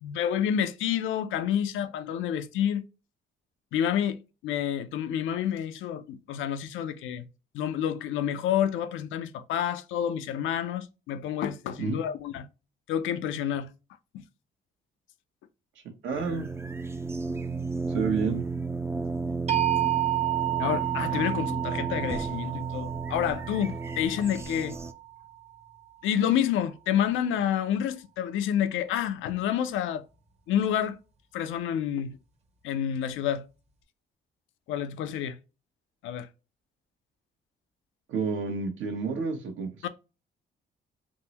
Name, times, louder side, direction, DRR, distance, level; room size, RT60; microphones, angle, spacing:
voice 1, 0.0-2.8 3.7-7.2 7.5-12.5 12.9-13.7 20.6-24.8 26.0-30.1 30.5-31.0 31.3-32.2 32.6-33.4 34.7-35.4 36.0-36.3 39.8-39.9, left 9 dB, 80° left, 0.4 m, -29 dB
voice 2, 16.0-16.5 17.9-18.4 38.1-39.7, right 5 dB, 75° right, 0.9 m, -29 dB
sound 1, 16.1-24.9, right 4 dB, 15° right, 0.3 m, -33 dB
sound 2, 19.5-25.5, right 14 dB, 35° right, 0.8 m, -31 dB
3.6 x 2.1 x 2.8 m
cardioid pair, 90°, 20 cm